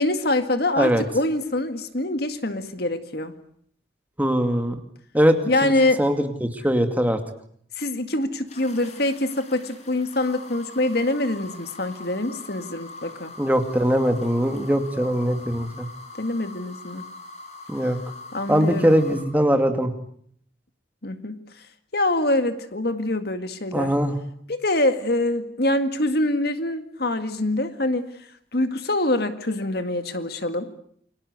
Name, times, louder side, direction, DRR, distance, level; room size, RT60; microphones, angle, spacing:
voice 1, 0.0-3.3 5.5-6.0 7.8-13.3 16.2-17.0 18.3-18.9 21.0-21.4 21.9-23.9 24.5-28.1 28.5-30.7, left 1 dB, 55° left, 9 dB, 2.0 m, -24 dB
voice 2, 4.2-4.8 5.1-5.7 6.0-7.2 13.4-15.9 17.7-18.0 18.5-19.9 23.7-24.1, equal, 10° right, 6 dB, 2.5 m, -21 dB
sound 1, 8.5-19.2, left 3 dB, 35° left, 5.4 m, -42 dB
29.0 x 24.0 x 8.1 m, 0.65 s
head